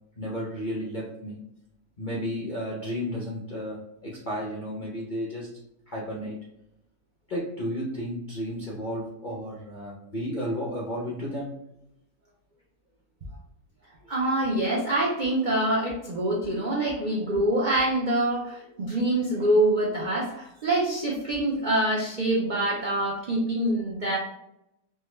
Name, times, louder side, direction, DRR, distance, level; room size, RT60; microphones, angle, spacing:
voice 1, 0.2-1.4 2.0-5.5 5.9-6.4 7.3-11.6, equal, 55° left, -5 dB, 0.5 m, -33 dB
voice 2, 14.1-24.2, right 1 dB, 65° right, -4 dB, 0.4 m, -25 dB
3.5 x 2.1 x 3.1 m, 0.81 s
omnidirectional pair, 1.7 m